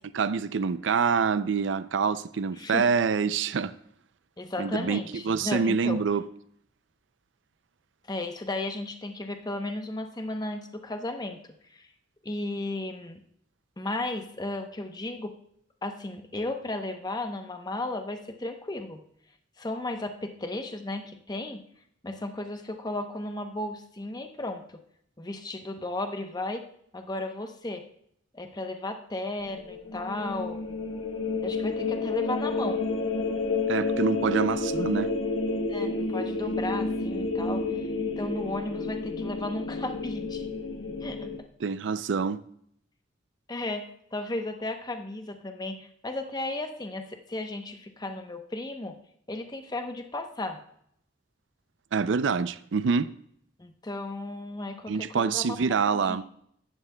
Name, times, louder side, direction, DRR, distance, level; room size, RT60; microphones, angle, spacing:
voice 1, 0.1-3.7 4.6-6.2 33.7-35.1 41.6-42.4 51.9-53.1 54.9-56.2, right 5 dB, 75° right, 0.4 m, -26 dB
voice 2, 2.6-2.9 4.4-6.0 8.1-11.4 11.7-11.9 12.2-13.2 13.8-15.4 15.8-19.0 19.6-21.6 22.0-24.7 25.2-26.6 26.9-27.9 28.3-30.6 31.4-32.8 35.7-37.8 38.2-40.5 41.0-41.3 43.5-49.0 49.3-50.6 53.6-55.6 55.9-56.2, left 2 dB, 20° left, 0.8 m, -34 dB
sound 1, 29.4-41.4, left 3 dB, 85° left, 1.2 m, -30 dB
15.5 x 11.0 x 2.2 m
head